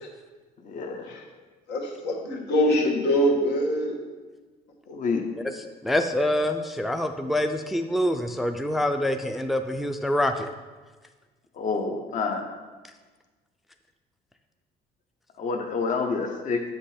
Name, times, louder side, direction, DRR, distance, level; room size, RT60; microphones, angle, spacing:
voice 1, 0.6-1.1 4.9-5.5 11.5-12.4 15.4-16.6, left 4 dB, 50° left, 4 dB, 0.9 m, -28 dB
voice 2, 1.7-4.0 4.9-5.0, equal, 80° left, 0 dB, 1.6 m, -24 dB
voice 3, 5.8-10.5, left 1 dB, ahead, 6 dB, 0.4 m, -25 dB
8.0 x 5.3 x 4.3 m, 1.3 s
cardioid pair, 110°, 17 cm